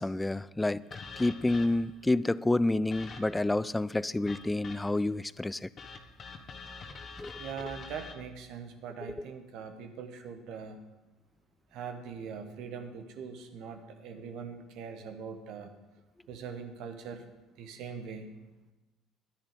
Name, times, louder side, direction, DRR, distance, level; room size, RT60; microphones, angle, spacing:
voice 1, 0.0-5.7 7.2-7.3, left 2 dB, 10° left, 0.4 m, -29 dB
sound 1, 0.9-2.0 2.9-3.5 4.3-5.1 5.8-8.1, left 4 dB, 40° left, 1.4 m, -45 dB
voice 2, 7.4-10.8 11.7-15.7 16.3-17.3 17.6-18.3, right 6 dB, 65° right, 1.3 m, -42 dB
11.5 x 10.5 x 5.2 m
hypercardioid pair, 60°, 0 cm